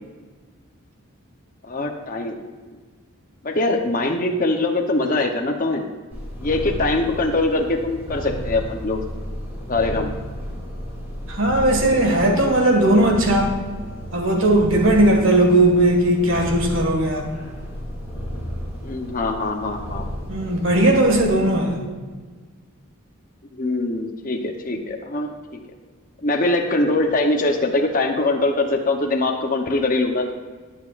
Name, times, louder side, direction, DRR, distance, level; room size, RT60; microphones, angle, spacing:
voice 1, 1.7-2.4 3.4-5.9 6.4-9.0 9.7-10.1 18.8-20.1 21.7-21.9 23.5-25.3 26.2-30.3, left 2 dB, 40° left, 2 dB, 0.9 m, -22 dB
Purr, 6.1-21.5, equal, 10° right, 3.0 m, -33 dB
voice 2, 11.3-13.5 14.1-17.3 20.3-21.8, right 1 dB, 60° right, 2 dB, 1.8 m, -17 dB
19.0 x 7.2 x 2.5 m, 1.4 s
head